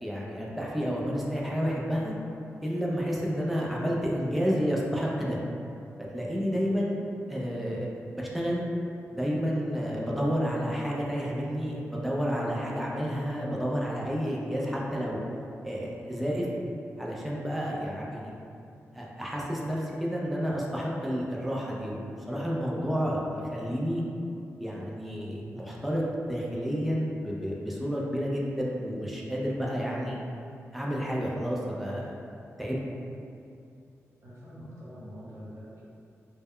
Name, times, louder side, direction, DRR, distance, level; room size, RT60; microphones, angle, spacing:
voice 1, 0.0-2.1 2.6-5.4 6.1-7.0 7.3-7.9 8.1-8.6 9.1-15.2 15.6-16.5 17.0-18.3 18.9-24.0 24.6-26.0 26.3-30.2 30.7-32.1 32.6-32.8, equal, ahead, -4 dB, 0.4 m, -30 dB
voice 2, 34.2-35.8, equal, 65° right, -9 dB, 0.9 m, -45 dB
2.2 x 2.0 x 3.5 m, 2.6 s
cardioid pair, 70°, 5 cm